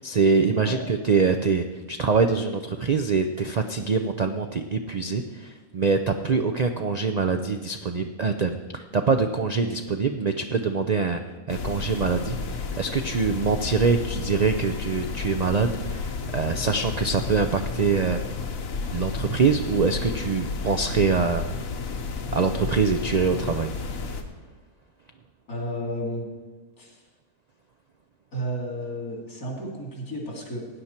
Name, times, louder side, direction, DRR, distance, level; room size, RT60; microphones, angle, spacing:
voice 1, 0.0-11.2 11.5-18.2 18.9-21.4 22.3-24.0, right 5 dB, 75° right, 7 dB, 0.3 m, -24 dB
sound 1, 11.5-24.2, left 4 dB, 70° left, 1.4 m, -32 dB
voice 2, 25.5-26.3 26.8-27.0 28.3-30.7, equal, 85° left, 0 dB, 3.1 m, -32 dB
16.5 x 9.6 x 4.4 m, 1.3 s
omnidirectional pair, 1.5 m